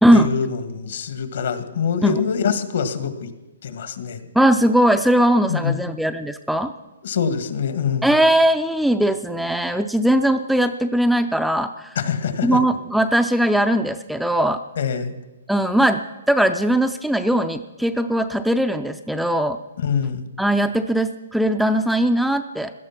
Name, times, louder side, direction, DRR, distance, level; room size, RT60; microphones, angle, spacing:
voice 1, 0.1-3.3 3.6-4.2 5.5-5.9 7.0-8.1 12.0-12.6 14.8-15.1 19.8-20.3, left 6 dB, 65° left, 10 dB, 1.7 m, -24 dB
voice 2, 4.3-6.7 8.0-12.0 12.4-14.6 15.5-16.0 16.3-19.6 20.4-22.7, right 1 dB, ahead, 7 dB, 0.5 m, -19 dB
17.0 x 12.5 x 5.9 m, 1.1 s
hypercardioid pair, 150°, 0 cm